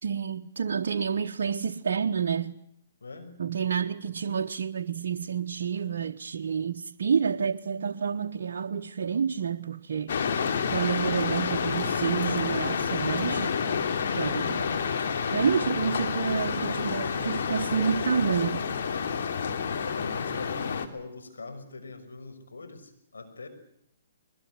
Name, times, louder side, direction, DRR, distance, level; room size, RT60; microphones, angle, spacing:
voice 1, 0.0-2.6 3.4-10.2 10.7-13.6 14.1-14.5 15.3-18.6, right 6 dB, 65° right, 1.0 m, -29 dB
voice 2, 3.0-3.4 14.1-14.4 19.8-23.5, left 3 dB, 90° left, 5.8 m, -42 dB
sound 1, 10.1-20.9, left 6 dB, 60° left, 2.7 m, -29 dB
22.0 x 21.0 x 9.6 m
hypercardioid pair, 135°, 0 cm